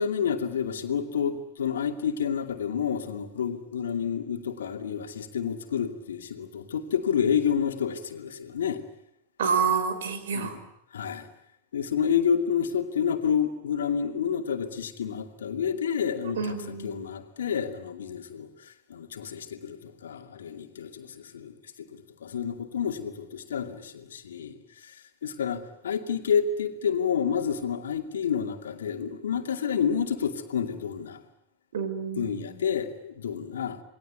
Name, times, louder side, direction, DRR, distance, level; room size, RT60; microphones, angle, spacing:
voice 1, 0.0-8.8 10.3-10.6 10.9-11.3 11.7-21.9 22.2-24.9 25.2-31.2 32.2-33.8, left 7 dB, 65° left, 6 dB, 2.5 m, -29 dB
voice 2, 9.4-10.5 16.2-17.0 31.7-32.6, right 6 dB, 60° right, 10 dB, 4.6 m, -28 dB
28.0 x 21.0 x 9.5 m, 0.78 s
figure-of-eight pair, 90°, 0 cm